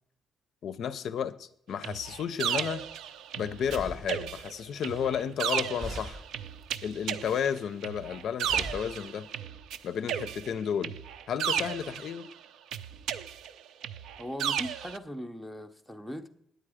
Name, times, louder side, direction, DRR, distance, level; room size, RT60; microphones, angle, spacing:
voice 1, 0.6-2.8 3.4-6.2 6.8-9.3 9.8-10.9 11.3-12.3, left 8 dB, 55° left, 0.4 m, -32 dB
sound 1, 1.8-3.8 4.1-9.8 10.1-12.3 12.7-15.0, right 9 dB, 80° right, 0.4 m, -34 dB
sound 2, 3.1-3.2 3.6-5.5 5.8-6.5 6.8-7.7 8.4-9.1, right 2 dB, 35° right, 0.8 m, -42 dB
voice 2, 14.2-16.3, equal, ahead, 0.5 m, -39 dB
9.3 x 8.6 x 4.9 m
cardioid pair, 175°, 0 cm